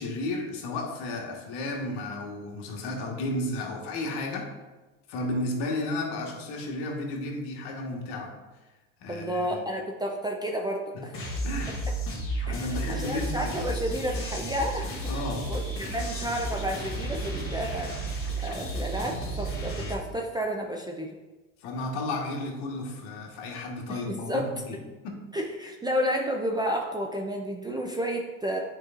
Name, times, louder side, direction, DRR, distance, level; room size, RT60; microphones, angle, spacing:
voice 1, 0.0-4.5 5.1-8.4 9.0-9.6 10.9-11.0 11.4-11.8 12.4-13.5 15.1-15.5 21.6-24.8 25.0-25.2, left 2 dB, 60° left, 1 dB, 1.5 m, -33 dB
voice 2, 9.1-11.1 12.4-14.9 15.5-17.9 18.4-21.1 23.9-24.5 25.3-28.6, equal, 10° right, 0 dB, 0.5 m, -31 dB
sound 1, 11.1-19.9, right 1 dB, 30° left, 2.0 m, -32 dB
8.5 x 4.7 x 2.5 m, 1.2 s
supercardioid pair, 100°, 44 cm